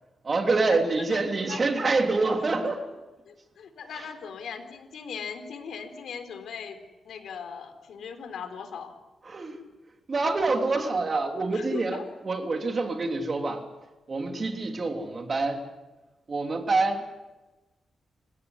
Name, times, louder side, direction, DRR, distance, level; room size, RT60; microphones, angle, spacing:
voice 1, 0.2-2.8 9.3-9.6 10.1-13.6 14.1-15.6 16.3-17.0, right 3 dB, 35° right, 5 dB, 3.3 m, -26 dB
voice 2, 3.2-6.8 7.1-8.9 11.5-12.0 12.8-12.9, left 6 dB, 85° left, 7 dB, 3.8 m, -39 dB
28.0 x 16.5 x 9.7 m, 1.1 s
wide cardioid pair, 115°, 0 cm